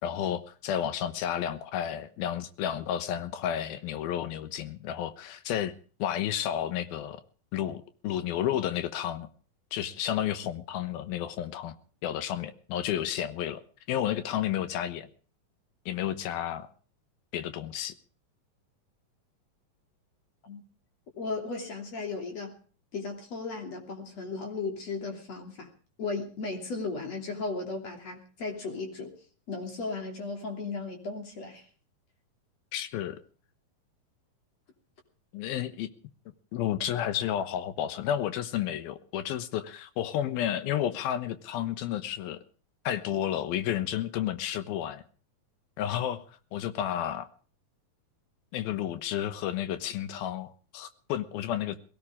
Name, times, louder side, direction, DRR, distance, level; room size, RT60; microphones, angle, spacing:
voice 1, 0.0-5.7 6.0-7.2 7.5-9.3 9.7-11.7 12.0-13.6 13.9-15.1 15.9-16.7 17.3-17.9 32.7-33.2 35.3-35.9 36.5-42.4 42.8-45.0 45.8-46.3 46.5-47.3 48.5-51.8, left 10 dB, 90° left, 3.1 m, -31 dB
voice 2, 21.2-22.5 22.9-25.7 26.0-29.1 29.5-31.7, left 3 dB, 45° left, 4.0 m, -35 dB
21.0 x 17.5 x 3.6 m
omnidirectional pair, 4.1 m